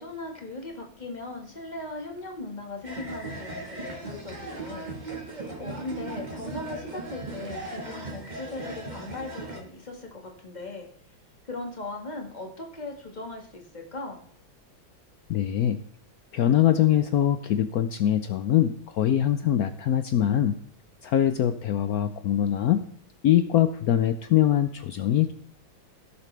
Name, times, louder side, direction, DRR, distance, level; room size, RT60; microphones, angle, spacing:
voice 1, 0.0-5.1 5.6-10.9 11.5-14.2, left 2 dB, 25° left, 2 dB, 1.7 m, -38 dB
sound 1, 2.8-9.6, right 2 dB, 25° right, 1.5 m, -37 dB
voice 2, 15.3-15.8 16.3-20.6 21.0-22.8 23.2-25.3, left 11 dB, 80° left, 10 dB, 0.8 m, -23 dB
17.0 x 7.1 x 3.3 m, 0.62 s
omnidirectional pair, 2.2 m